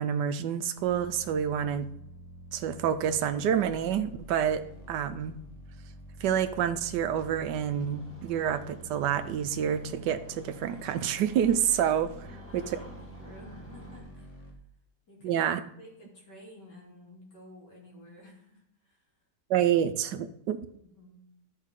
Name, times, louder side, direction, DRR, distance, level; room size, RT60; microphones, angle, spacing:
voice 1, 0.0-1.9 2.5-4.6 4.9-5.3 6.2-12.3 12.5-12.8 15.2-15.6 19.5-20.6, right 9 dB, 85° right, 11 dB, 1.3 m, -28 dB
sound 1, 0.8-14.5, equal, 35° left, 1.4 m, -48 dB
Engine starting, 7.5-14.0, equal, 10° left, 1.6 m, -51 dB
voice 2, 12.2-14.6 15.1-15.5 15.8-19.0 20.0-20.2 20.8-21.2, left 1 dB, 90° left, -3 dB, 3.3 m, -52 dB
13.5 x 5.4 x 3.7 m, 0.73 s
omnidirectional pair, 1.8 m